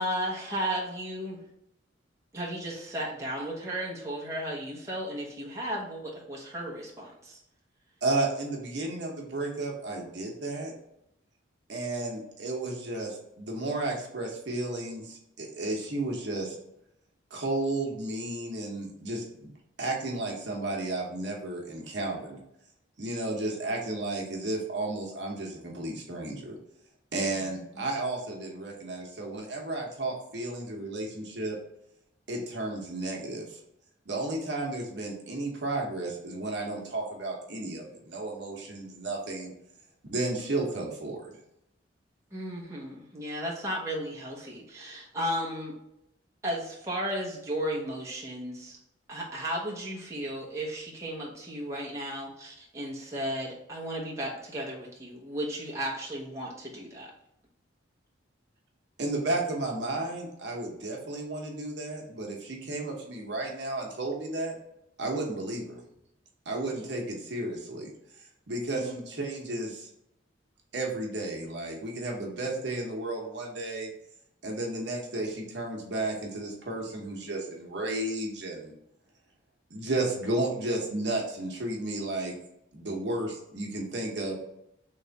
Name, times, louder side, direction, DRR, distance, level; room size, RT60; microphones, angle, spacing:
voice 1, 0.0-1.4 2.3-7.4 42.3-45.7 46.4-48.8 49.1-57.1 66.6-66.7 68.7-68.9, equal, 15° right, -5 dB, 0.9 m, -34 dB
voice 2, 8.0-10.7 11.7-16.6 17.3-19.5 19.8-22.4 23.0-26.6 27.1-31.6 32.3-33.6 34.1-39.5 40.0-41.3 59.0-64.6 65.0-65.8 66.4-69.9 70.7-73.9 74.4-78.7 79.7-82.3 82.7-84.3, right 2 dB, 60° right, -1 dB, 1.0 m, -33 dB
3.4 x 3.1 x 4.0 m, 0.81 s
head